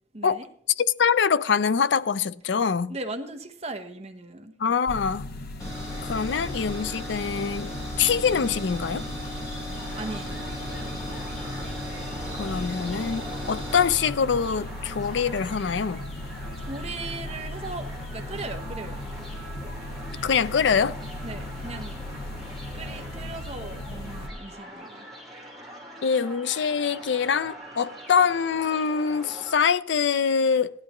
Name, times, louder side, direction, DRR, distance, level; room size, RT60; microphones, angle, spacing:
voice 1, 0.1-0.5 2.9-4.5 9.9-10.5 16.6-19.0 21.2-22.0 22.7-25.1, right 2 dB, 35° right, 0.9 m, -38 dB
voice 2, 0.8-2.9 4.6-5.3 6.0-9.0 12.3-16.0 20.2-21.0 26.0-30.7, left 6 dB, 75° left, 0.5 m, -24 dB
sound 1, 4.9-24.3, left 1 dB, 55° left, 0.9 m, -37 dB
sound 2, 5.6-13.9, left 1 dB, 20° left, 6.6 m, -37 dB
sound 3, 9.7-29.6, right 1 dB, ahead, 2.6 m, -43 dB
17.5 x 10.5 x 3.0 m
head